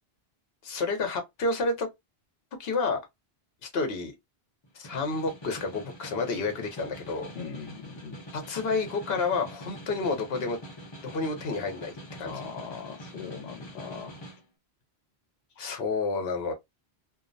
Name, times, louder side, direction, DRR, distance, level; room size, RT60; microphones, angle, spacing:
voice 1, 0.6-1.9 2.6-3.0 3.7-4.1 4.7-7.3 8.3-10.6 11.0-12.3 15.6-16.5, left 3 dB, 70° left, 1.0 m, -30 dB
Snare drum, 4.6-14.4, equal, 30° left, 0.7 m, -45 dB
voice 2, 7.3-8.2 12.2-14.2, left 6 dB, 90° left, 0.9 m, -40 dB
2.5 x 2.0 x 2.5 m
omnidirectional pair, 1.1 m